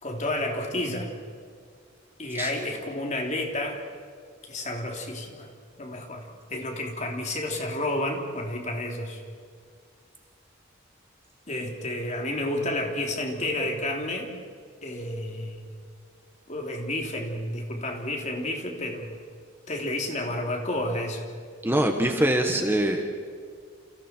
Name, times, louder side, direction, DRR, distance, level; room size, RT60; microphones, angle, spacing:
voice 1, 0.0-1.1 2.2-3.8 4.5-5.5 5.8-9.2 11.5-14.3 14.8-15.7 16.5-19.2 19.7-21.2, left 1 dB, 35° left, 1 dB, 3.3 m, -30 dB
voice 2, 21.6-23.0, right 1 dB, 10° right, 4 dB, 1.3 m, -23 dB
30.0 x 29.0 x 4.5 m, 2.1 s
head